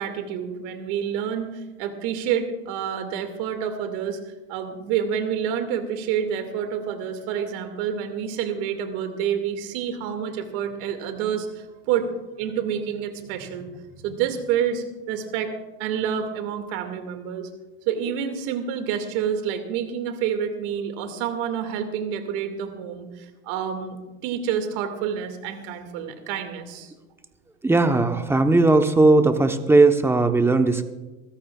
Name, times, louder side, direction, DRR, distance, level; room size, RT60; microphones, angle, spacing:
voice 1, 0.0-4.2 4.5-12.1 12.4-13.6 13.9-15.5 15.8-17.5 17.9-24.0 24.2-26.9, right 8 dB, 60° right, 6 dB, 2.2 m, -28 dB
voice 2, 27.6-30.8, right 3 dB, 5° right, 7 dB, 1.0 m, -18 dB
23.0 x 14.5 x 2.4 m, 1.1 s
supercardioid pair, 120°, 35 cm